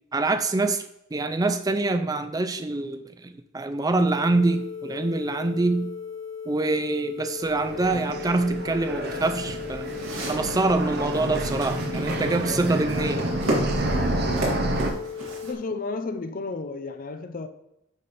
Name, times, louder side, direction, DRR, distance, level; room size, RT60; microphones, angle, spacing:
voice 1, 0.1-0.8 1.1-5.9 6.5-9.9 10.2-13.3, right 2 dB, 15° right, 0.4 m, -25 dB
sound 1, 4.1-15.5, left 7 dB, 60° left, 0.9 m, -37 dB
sound 2, 7.4-14.9, right 1 dB, 50° right, 0.8 m, -29 dB
sound 3, 9.1-15.5, right 1 dB, 80° right, 2.4 m, -34 dB
voice 2, 15.4-17.5, left 3 dB, 40° left, 0.5 m, -32 dB
9.7 x 3.3 x 4.1 m
head